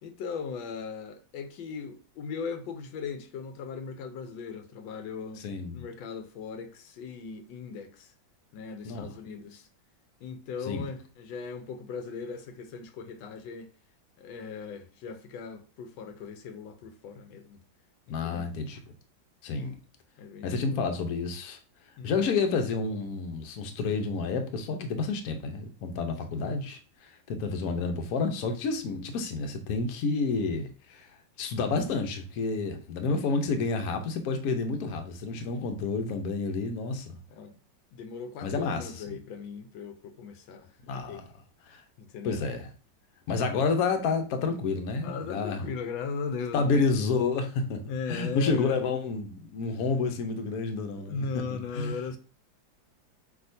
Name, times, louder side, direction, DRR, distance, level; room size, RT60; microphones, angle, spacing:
voice 1, 0.0-5.4 5.7-8.1 8.5-9.7 10.2-13.7 14.2-17.6 18.2-18.5 20.2-20.8 22.0-22.2 26.3-26.4 35.5-35.9 37.3-37.6 37.9-41.3 42.0-42.4 45.0-46.9 47.9-48.8 50.9-52.2, left 5 dB, 90° left, 1.4 m, -38 dB
voice 2, 5.4-5.8 8.8-9.1 10.7-10.9 18.1-18.8 19.4-19.8 20.4-21.6 22.0-31.1 31.4-37.2 38.4-39.2 40.8-41.2 41.7-41.8 42.2-42.7 43.3-45.6 46.5-51.9, left 4 dB, 65° left, 1.0 m, -30 dB
5.7 x 2.9 x 2.6 m
omnidirectional pair, 2.1 m